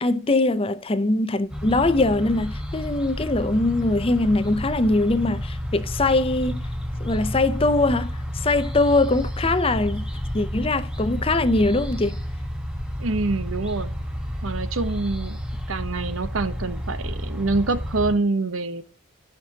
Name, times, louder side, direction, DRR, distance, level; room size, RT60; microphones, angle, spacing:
voice 1, 0.0-6.6 7.0-10.0 10.3-12.2, left 2 dB, 25° left, 0.6 m, -22 dB
sound 1, 1.5-18.1, equal, 5° right, 1.3 m, -31 dB
voice 2, 13.0-13.9 14.4-15.4 15.7-18.8, right 3 dB, 75° right, 0.9 m, -26 dB
15.0 x 6.0 x 2.8 m
head